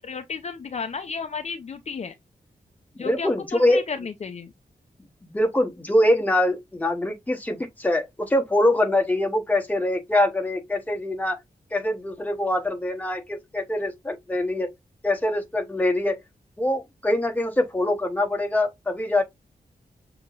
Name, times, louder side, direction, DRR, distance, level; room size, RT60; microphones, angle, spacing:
voice 1, 0.0-2.1 3.0-4.5, left 5 dB, 45° left, 0.4 m, -33 dB
voice 2, 3.0-3.8 5.2-11.4 11.7-14.7 15.0-16.2 16.6-19.2, left 1 dB, 10° left, 0.9 m, -24 dB
6.6 x 2.8 x 2.4 m
wide cardioid pair, 180°, 16 cm